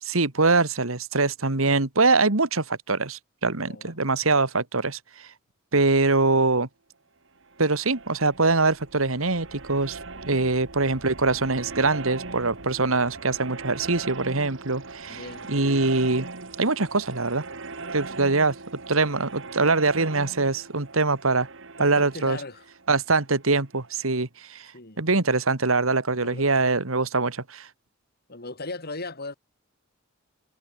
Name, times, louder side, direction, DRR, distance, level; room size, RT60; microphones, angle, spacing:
voice 1, 0.0-5.3 5.7-6.7 7.6-10.0 10.3-15.2 15.5-16.3 16.6-17.4 17.9-18.6 18.9-21.5 21.8-22.4 22.9-24.7 25.0-27.7, right 3 dB, 85° right, 2.2 m, -23 dB
voice 2, 3.7-4.0 15.0-15.8 21.8-22.6 24.7-25.0 26.2-26.7 28.3-29.4, left 3 dB, 50° left, 5.2 m, -38 dB
sound 1, 7.4-24.0, right 3 dB, 65° right, 2.5 m, -40 dB
head